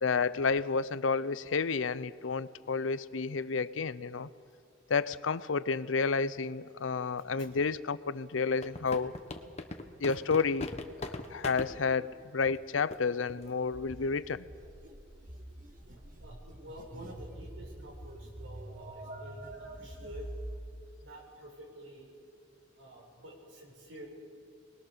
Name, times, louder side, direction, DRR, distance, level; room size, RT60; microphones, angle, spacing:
voice 1, 0.0-4.3 4.9-9.2 10.0-10.7 11.3-14.5, left 5 dB, 90° left, 16 dB, 0.6 m, -30 dB
sound 1, 8.6-11.7 12.5-12.6 12.9-13.0 13.3-13.5 13.9-14.1, left 2 dB, 35° left, 1.3 m, -39 dB
sound 2, 13.7-20.6, right 1 dB, 45° right, 1.8 m, -46 dB
voice 2, 15.9-20.3 21.0-22.1 22.8-24.1, right 1 dB, 85° right, -1 dB, 5.9 m, -49 dB
24.0 x 20.5 x 6.7 m, 2.4 s
head